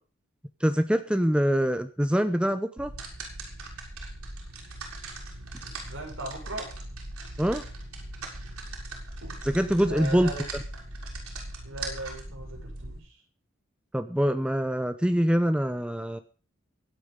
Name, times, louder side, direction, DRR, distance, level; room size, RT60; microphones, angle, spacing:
voice 1, 0.6-2.9 7.4-7.6 9.4-10.3 13.9-16.2, equal, 5° right, 9 dB, 0.8 m, -24 dB
sound 1, 2.8-13.0, right 2 dB, 85° right, 6.5 m, -39 dB
voice 2, 5.6-6.7 9.9-10.5 11.6-13.0, right 1 dB, 65° right, 1 dB, 6.8 m, -38 dB
23.5 x 8.8 x 5.2 m, 0.40 s
head